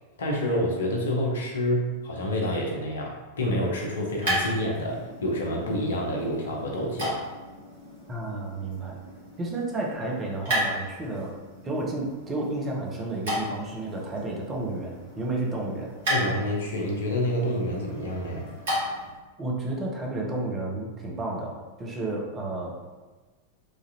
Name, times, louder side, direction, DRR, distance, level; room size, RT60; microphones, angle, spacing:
voice 1, 0.2-7.2 16.1-18.5, left 1 dB, 65° left, -1 dB, 0.6 m, -28 dB
sound 1, 3.6-19.2, equal, 60° right, 1.4 m, -35 dB
voice 2, 8.1-9.0 9.4-15.9 19.4-22.9, right 2 dB, 20° right, -2 dB, 0.7 m, -31 dB
3.2 x 2.4 x 2.8 m, 1.3 s
figure-of-eight pair, 90°, 0 cm